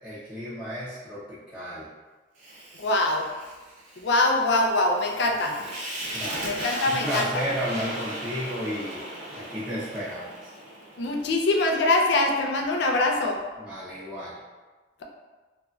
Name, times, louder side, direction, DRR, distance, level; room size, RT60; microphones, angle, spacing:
voice 1, 0.0-1.9 6.1-6.6 6.9-9.0 9.3-10.3 13.6-14.4, equal, 5° right, -15 dB, 0.6 m, -33 dB
Fire, 2.4-11.6, right 1 dB, 40° right, 0.7 m, -37 dB
voice 2, 2.8-3.3 4.0-5.6 6.4-7.4 11.0-13.4, left 2 dB, 60° left, 1 dB, 0.4 m, -23 dB
3.0 x 2.5 x 2.3 m, 1.3 s
head